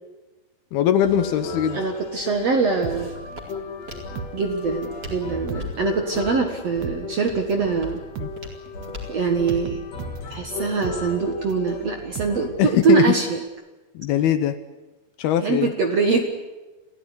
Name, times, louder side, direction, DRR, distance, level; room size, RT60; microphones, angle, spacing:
voice 1, 0.7-1.8 8.2-8.3 12.6-13.1 13.9-14.6 15.2-15.7, left 10 dB, 70° left, 11 dB, 2.7 m, -21 dB
sound 1, 1.0-12.5, left 4 dB, 40° left, 3.9 m, -35 dB
Walk footsteps, 1.7-9.7, left 2 dB, 25° right, 4.3 m, -42 dB
voice 2, 1.7-3.1 4.3-8.0 9.1-9.8 10.3-13.4 15.4-16.3, right 5 dB, 55° right, 4 dB, 2.0 m, -23 dB
sound 2, 2.8-5.0 5.3-13.0 13.3-13.4, right 7 dB, 85° right, 1.6 m, -37 dB
27.5 x 16.5 x 9.8 m, 1.2 s
omnidirectional pair, 5.0 m